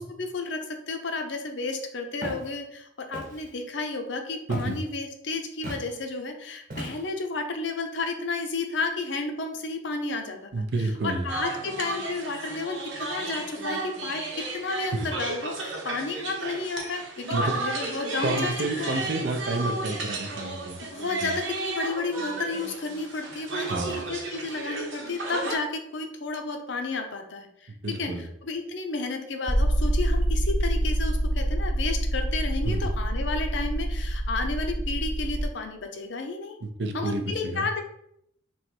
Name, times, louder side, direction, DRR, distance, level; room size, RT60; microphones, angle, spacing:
voice 1, 0.0-19.0 20.5-20.6 20.9-27.7 28.0-36.6 36.9-37.8, left 3 dB, 65° left, 5 dB, 0.6 m, -32 dB
Walk footsteps, 2.2-2.5 3.1-3.5 4.5-4.8 5.6-5.9 6.7-7.2, right 1 dB, 40° right, 0.9 m, -36 dB
voice 2, 10.5-11.3 14.9-15.1 17.3-17.5 18.2-20.8 21.2-21.3 23.7-24.1 27.8-28.3 32.6-32.9 36.6-37.7, right 2 dB, 60° right, 5 dB, 0.5 m, -29 dB
sound 1, 11.3-25.6, right 3 dB, 75° right, 0.9 m, -33 dB
sound 2, 29.5-35.4, right 1 dB, 5° right, 0.6 m, -26 dB
3.2 x 2.9 x 4.4 m, 0.73 s
head